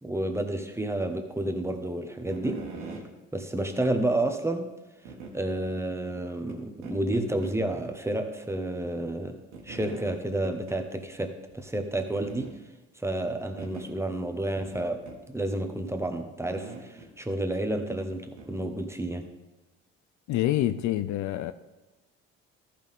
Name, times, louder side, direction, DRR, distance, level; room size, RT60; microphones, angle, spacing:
voice 1, 0.0-2.6 3.3-4.7 5.3-9.4 9.6-12.5 12.9-15.0 15.3-19.2, right 1 dB, 10° right, 1.3 m, -30 dB
sound 1, 2.2-3.1 4.0-4.1 5.1-5.3 6.5-6.6 6.8-7.6 7.9-8.0 9.5-10.2 10.4-10.8 11.1-11.2 11.5-11.6 12.2-12.6 13.6-13.9 14.6-15.2 16.5-17.1 18.4-18.5, right 4 dB, 85° right, 1.5 m, -42 dB
voice 2, 20.3-21.5, left 13 dB, 60° left, 0.5 m, -26 dB
14.0 x 5.9 x 3.7 m
hypercardioid pair, 55°, 33 cm